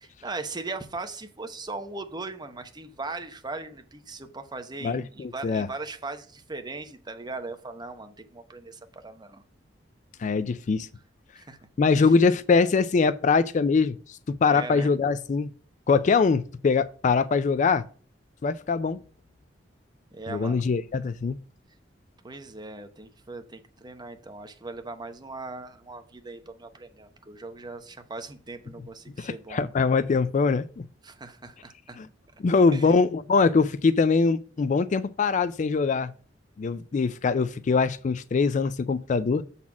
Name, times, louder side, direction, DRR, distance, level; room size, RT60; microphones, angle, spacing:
voice 1, 0.0-9.4 11.4-11.6 12.0-12.1 14.5-14.9 20.1-20.6 22.2-29.7 31.0-32.0 32.7-33.0, right 3 dB, 25° right, 0.9 m, -39 dB
voice 2, 4.8-5.7 10.2-10.9 11.8-14.0 14.3-15.5 15.9-17.8 18.4-19.0 20.3-21.4 29.2-30.8 32.0-32.1 32.4-36.1 36.6-39.4, left 4 dB, 40° left, 0.4 m, -23 dB
7.2 x 4.1 x 6.0 m
head